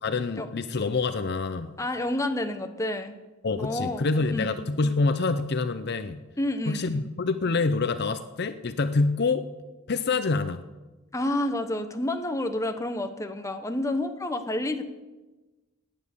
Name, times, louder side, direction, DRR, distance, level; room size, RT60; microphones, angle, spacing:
voice 1, 0.0-1.7 3.4-6.2 6.7-9.5 9.9-10.6, left 3 dB, 50° left, 11 dB, 0.6 m, -26 dB
voice 2, 1.8-3.1 3.6-4.5 6.4-7.0 11.1-14.8, left 1 dB, 15° left, 7 dB, 1.0 m, -29 dB
17.5 x 9.5 x 6.9 m, 1.2 s
head